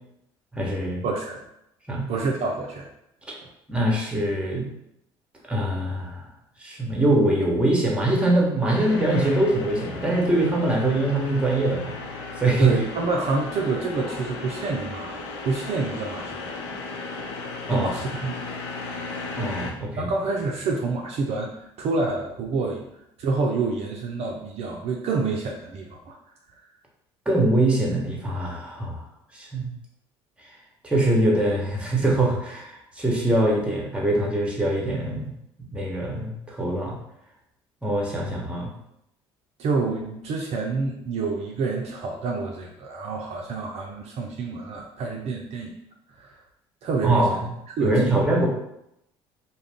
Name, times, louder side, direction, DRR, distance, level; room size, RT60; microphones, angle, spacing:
voice 1, 0.5-1.0 1.9-2.1 3.3-3.4 3.7-4.7 5.5-6.2 6.6-11.9 12.4-12.7 17.7-17.9 19.3-20.1 27.3-29.0 29.3-29.6 30.8-35.3 35.7-36.9 37.8-38.7 47.0-47.3 47.8-48.5, right 1 dB, 10° right, -2 dB, 1.0 m, -23 dB
voice 2, 1.0-1.4 2.1-2.9 12.6-16.5 17.7-18.3 20.0-22.9 23.2-26.2 39.6-45.7 46.1-46.3 46.8-47.5 47.8-48.2, right 3 dB, 55° right, 0 dB, 0.4 m, -28 dB
sound 1, 8.7-19.7, left 3 dB, 75° left, 0.5 m, -35 dB
2.4 x 2.1 x 3.5 m, 0.81 s
hypercardioid pair, 60°, 13 cm